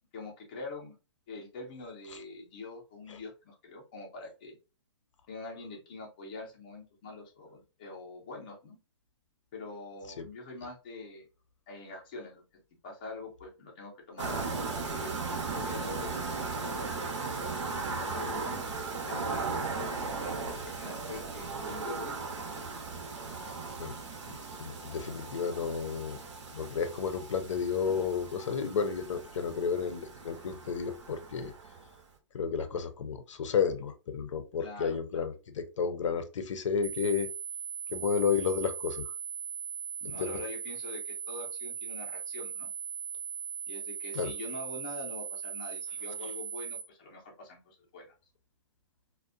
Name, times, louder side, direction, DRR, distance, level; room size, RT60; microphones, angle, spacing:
voice 1, 0.1-1.0 1.3-4.6 5.3-8.8 9.5-11.3 11.7-16.9 17.8-22.2 34.6-35.2 40.0-42.7 43.7-48.1, left 2 dB, 20° left, -1 dB, 0.4 m, -44 dB
sound 1, 14.2-32.0, right 4 dB, 80° right, 0.7 m, -37 dB
voice 2, 24.3-26.2 26.5-31.5 32.3-37.3 37.9-39.1 40.0-40.4 44.1-44.3, left 6 dB, 85° left, 9 dB, 0.5 m, -32 dB
sound 2, 36.8-46.8, right 7 dB, 25° right, 0.6 m, -39 dB
2.5 x 2.1 x 2.4 m, 0.31 s
hypercardioid pair, 180°, 15 cm